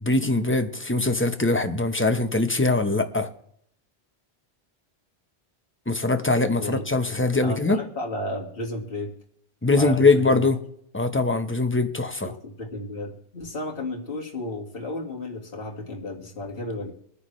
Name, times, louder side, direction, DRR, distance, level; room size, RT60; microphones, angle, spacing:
voice 1, 0.0-3.3 5.9-7.8 9.6-10.6 10.9-12.3, left 3 dB, 10° left, 1.0 m, -22 dB
voice 2, 7.4-9.1 9.7-10.4 12.2-16.9, left 2 dB, 60° left, 2.3 m, -33 dB
22.5 x 10.0 x 3.3 m
omnidirectional pair, 1.1 m